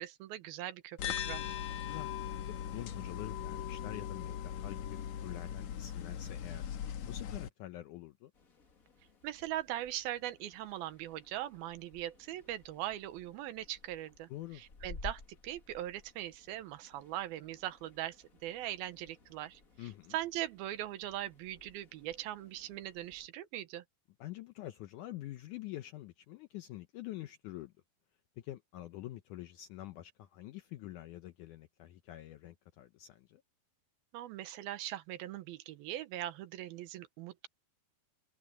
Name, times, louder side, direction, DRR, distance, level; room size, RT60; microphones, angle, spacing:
voice 1, 0.0-1.6 9.2-18.2 18.4-23.8 34.1-37.5, right 13 dB, 80° right, 2.8 m, -41 dB
sound 1, 1.0-7.5, left 9 dB, 60° left, 2.1 m, -39 dB
voice 2, 2.4-6.7 7.1-8.3 14.3-14.6 19.8-20.1 24.2-27.7 28.4-33.4, left 14 dB, 80° left, 1.8 m, -46 dB
sound 2, 8.3-23.3, left 3 dB, 35° left, 1.5 m, -55 dB
omnidirectional pair, 4.4 m